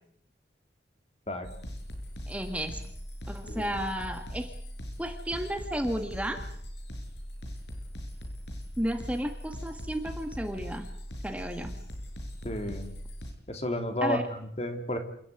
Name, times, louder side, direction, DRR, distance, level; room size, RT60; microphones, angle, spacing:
sound 1, 1.4-13.3, equal, 80° left, 6.8 m, -40 dB
voice 1, 2.3-2.8 3.3-4.5 5.0-6.4 8.8-10.9 11.2-11.7 14.0-14.3, equal, 10° right, 5 dB, 2.0 m, -33 dB
voice 2, 12.4-13.0 13.5-15.0, left 1 dB, 35° left, 5 dB, 3.4 m, -32 dB
28.5 x 14.5 x 9.3 m, 0.67 s
head